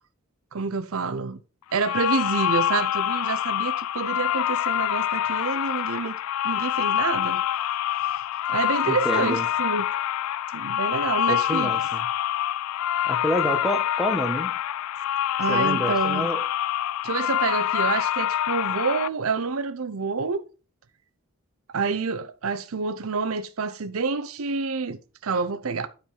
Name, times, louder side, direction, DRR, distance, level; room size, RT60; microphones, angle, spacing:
voice 1, 0.5-1.4 1.7-6.2 6.4-7.4 8.5-9.8 10.5-11.7 15.4-16.3 17.0-20.4 21.7-25.9, right 4 dB, 70° right, 0.6 m, -28 dB
sound 1, 1.7-19.1, left 11 dB, 80° left, 0.3 m, -26 dB
voice 2, 8.9-9.4 11.3-12.1 13.0-14.5 15.5-16.4, equal, ahead, 1.1 m, -28 dB
9.5 x 4.5 x 3.8 m
head